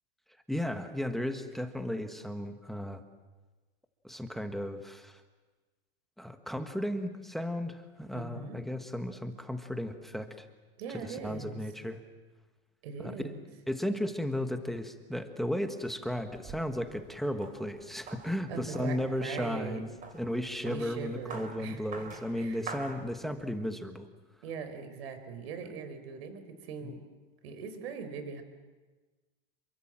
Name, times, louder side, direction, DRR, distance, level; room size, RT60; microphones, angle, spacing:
voice 1, 0.5-3.0 4.0-5.2 6.2-10.5 10.9-12.0 13.0-13.3 13.7-24.1 26.8-26.9, left 1 dB, ahead, 7 dB, 1.5 m, -35 dB
voice 2, 8.1-8.6 10.8-11.6 12.8-13.5 18.5-19.8 20.6-22.0 22.4-22.6 24.4-27.0 27.4-28.4, right 5 dB, 75° right, 9 dB, 4.4 m, -40 dB
sound 1, 16.0-23.6, right 4 dB, 25° right, 3.6 m, -48 dB
27.5 x 23.0 x 7.5 m, 1.2 s
supercardioid pair, 145°, 31 cm